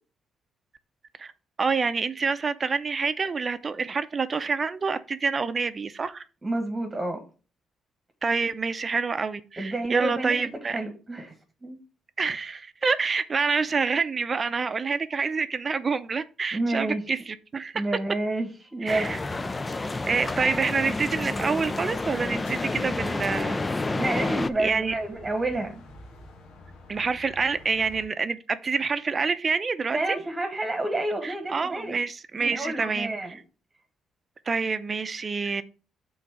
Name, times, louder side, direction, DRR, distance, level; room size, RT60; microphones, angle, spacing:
voice 1, 1.6-6.2 8.2-10.8 12.2-17.8 18.8-19.2 20.1-23.6 24.1-24.3 24.6-24.9 26.9-30.2 31.2-33.1 34.5-35.6, right 5 dB, 35° right, 0.6 m, -27 dB
voice 2, 6.4-7.2 9.6-10.3 10.6-11.3 11.6-11.8 16.5-17.0 17.7-19.1 24.0-25.8 29.9-32.0 32.4-33.4, right 2 dB, 20° right, 1.4 m, -29 dB
sound 1, 18.9-24.5, left 2 dB, 20° left, 0.5 m, -29 dB
sound 2, 19.9-28.1, left 1 dB, 85° left, 1.8 m, -48 dB
6.0 x 4.0 x 5.9 m
cardioid pair, 90°, 0 cm